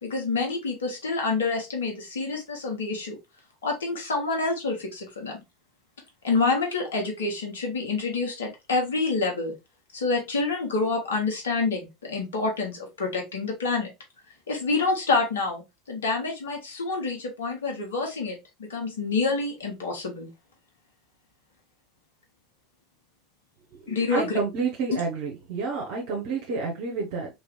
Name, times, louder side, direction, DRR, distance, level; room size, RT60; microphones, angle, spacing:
voice 1, 0.0-3.2 3.6-5.4 6.2-9.5 9.9-13.9 14.5-20.3 23.9-24.4, left 3 dB, 75° left, 1.3 m, -27 dB
voice 2, 23.7-27.3, right 4 dB, 60° right, 1.0 m, -30 dB
3.1 x 3.0 x 3.1 m
figure-of-eight pair, 75°, 0 cm